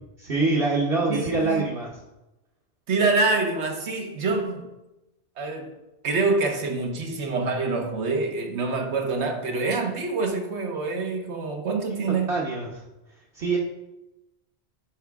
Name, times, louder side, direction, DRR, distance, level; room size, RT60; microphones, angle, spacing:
voice 1, 0.2-1.9 12.3-12.8 13.3-13.6, right 3 dB, 60° right, 1.3 m, -24 dB
voice 2, 1.1-1.6 2.9-4.7 5.4-5.8 6.0-12.3, right 3 dB, 80° right, 1.3 m, -26 dB
10.5 x 4.8 x 3.5 m
omnidirectional pair, 1.1 m